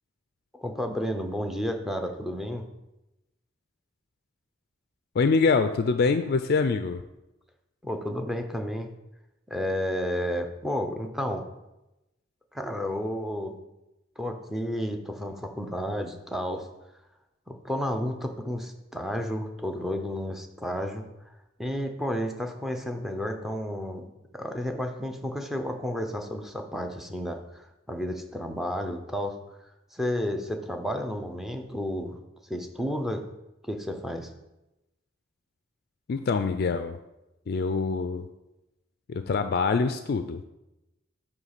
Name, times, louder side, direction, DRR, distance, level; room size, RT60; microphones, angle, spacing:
voice 1, 0.5-2.7 7.8-8.9 9.5-11.5 12.5-13.5 14.2-16.7 17.5-21.0 21.6-29.4 29.9-32.2 32.5-33.2 33.6-34.3, equal, ahead, 5 dB, 0.7 m, -31 dB
voice 2, 5.2-7.0 36.1-37.0 37.5-38.3 39.1-40.4, left 4 dB, 55° left, 9 dB, 0.4 m, -25 dB
9.2 x 3.2 x 6.6 m, 0.95 s
head